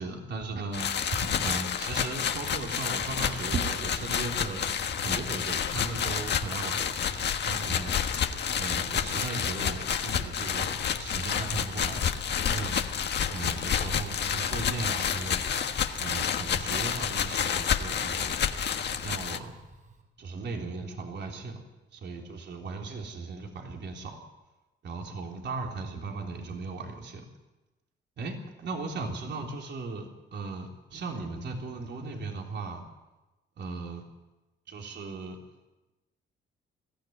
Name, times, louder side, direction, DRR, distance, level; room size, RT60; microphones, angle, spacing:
voice 1, 0.0-4.8 5.0-7.1 7.4-8.3 8.6-12.8 13.3-15.5 16.0-18.4 19.0-19.5 20.2-21.6 21.9-24.2 24.8-27.2 28.2-32.8 33.6-34.0 34.7-35.4, right 3 dB, 60° right, 2 dB, 3.6 m, -37 dB
sound 1, 0.7-19.4, left 8 dB, 60° left, 1.5 m, -29 dB
Fire, 2.4-20.0, right 4 dB, 40° right, 7.0 m, -47 dB
21.0 x 15.0 x 9.5 m, 1.1 s
cardioid pair, 90°, 20 cm